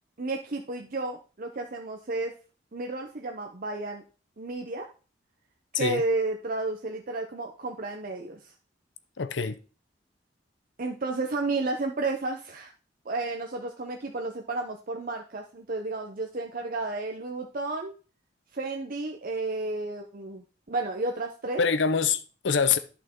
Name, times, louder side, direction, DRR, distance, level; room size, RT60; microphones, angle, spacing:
voice 1, 0.2-2.3 2.7-4.0 4.4-4.9 5.7-8.5 10.8-12.7 13.0-17.9 18.5-21.6, right 3 dB, 50° right, 0.8 m, -32 dB
voice 2, 9.2-9.6 21.6-22.8, left 6 dB, 75° left, 0.7 m, -25 dB
11.0 x 5.9 x 3.7 m
head